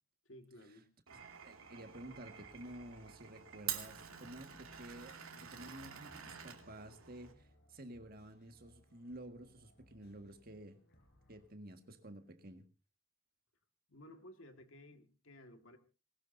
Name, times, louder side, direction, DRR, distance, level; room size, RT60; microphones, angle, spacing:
voice 1, 0.3-0.9 13.9-15.8, left 1 dB, 70° left, 6 dB, 1.9 m, -56 dB
voice 2, 1.1-10.8 11.3-12.6, right 1 dB, 45° right, 7 dB, 1.7 m, -52 dB
Glass, 1.1-7.3, right 9 dB, 85° right, 2.6 m, -48 dB
sound 1, 1.8-11.5, equal, 50° left, 4.2 m, -67 dB
20.5 x 18.5 x 2.7 m, 0.32 s
head